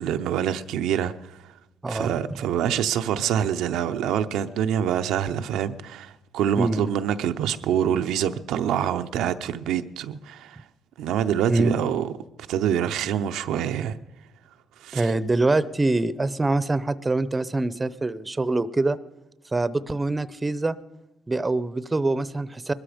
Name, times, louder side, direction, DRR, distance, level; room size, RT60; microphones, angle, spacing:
voice 1, 0.0-1.5 1.9-10.6 11.0-12.1 12.5-13.9 14.8-15.1, right 9 dB, 90° right, 0.6 m, -26 dB
voice 2, 6.6-6.9 11.5-11.7 14.9-19.0 19.5-20.8 21.3-22.7, right 2 dB, 20° right, 0.7 m, -24 dB
20.5 x 13.0 x 5.1 m
cardioid pair, 90°, 0 cm